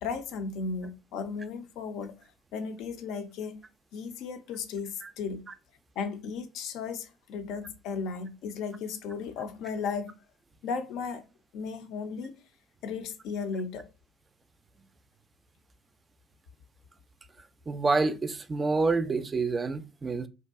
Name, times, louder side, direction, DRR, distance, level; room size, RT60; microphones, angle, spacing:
voice 1, 0.0-2.1 2.5-3.6 3.9-5.5 6.0-10.1 10.6-11.2 11.5-12.4 12.8-13.9, left 5 dB, 70° left, 0.4 m, -35 dB
voice 2, 17.7-20.3, right 3 dB, 30° right, 0.3 m, -27 dB
2.6 x 2.2 x 2.3 m
hypercardioid pair, 60°, 0 cm